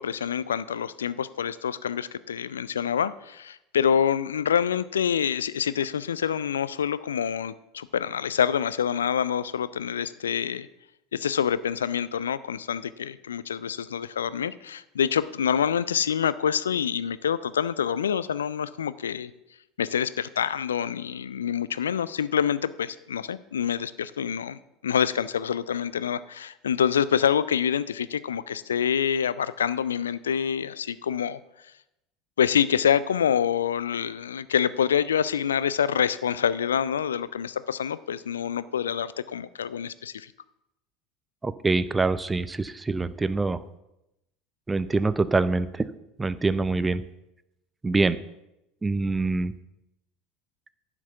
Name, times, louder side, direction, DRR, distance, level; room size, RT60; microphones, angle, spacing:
voice 1, 0.0-10.7 11.1-19.3 19.8-31.4 32.4-40.3, left 8 dB, 75° left, 17 dB, 0.4 m, -26 dB
voice 2, 41.4-43.6 44.7-45.9 46.2-47.0 47.8-48.2 48.8-49.5, right 3 dB, 15° right, 15 dB, 0.6 m, -25 dB
10.5 x 6.0 x 6.9 m, 0.89 s
figure-of-eight pair, 70°, 0 cm